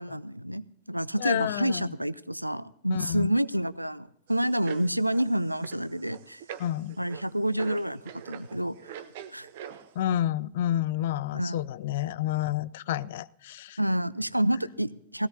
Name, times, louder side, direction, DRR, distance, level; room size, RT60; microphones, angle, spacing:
voice 1, 0.0-6.4 7.0-8.8 9.3-9.5 11.3-11.6 13.8-15.3, right 1 dB, 90° right, 19 dB, 0.4 m, -28 dB
voice 2, 1.2-1.9 2.9-3.3 6.6-7.0 10.0-13.8, left 12 dB, 55° left, 18 dB, 0.4 m, -29 dB
sound 1, 4.3-9.9, right 9 dB, 55° right, 0.8 m, -44 dB
18.5 x 16.5 x 2.7 m, 0.73 s
figure-of-eight pair, 90°, 0 cm